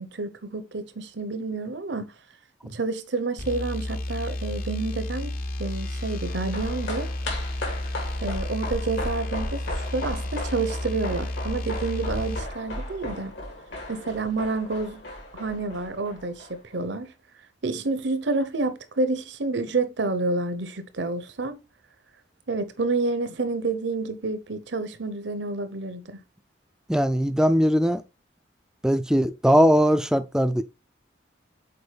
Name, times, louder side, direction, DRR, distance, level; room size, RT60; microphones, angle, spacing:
voice 1, 0.0-2.1 2.6-5.3 5.6-7.1 8.2-9.6 9.9-13.3 13.9-15.0 15.3-17.1 17.6-21.6 22.5-26.2, right 3 dB, 70° right, 0.8 m, -29 dB
sound 1, 3.4-12.5, left 1 dB, 45° left, 0.8 m, -32 dB
sound 2, 6.2-16.8 17.1-17.2, left 1 dB, 75° left, 2.8 m, -36 dB
voice 2, 26.9-28.0 28.8-30.6, equal, 5° right, 0.3 m, -20 dB
6.8 x 4.4 x 3.3 m
head